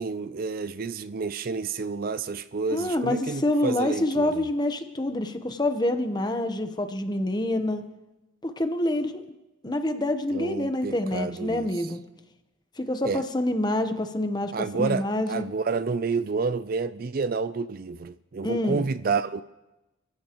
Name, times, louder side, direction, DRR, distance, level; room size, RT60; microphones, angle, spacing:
voice 1, 0.0-4.4 10.3-11.9 13.0-13.2 14.5-19.4, right 4 dB, 45° right, 0.4 m, -29 dB
voice 2, 2.7-7.8 8.4-9.2 9.6-12.0 12.8-15.4 18.4-18.8, left 1 dB, 20° left, 0.9 m, -27 dB
27.5 x 15.5 x 3.0 m
head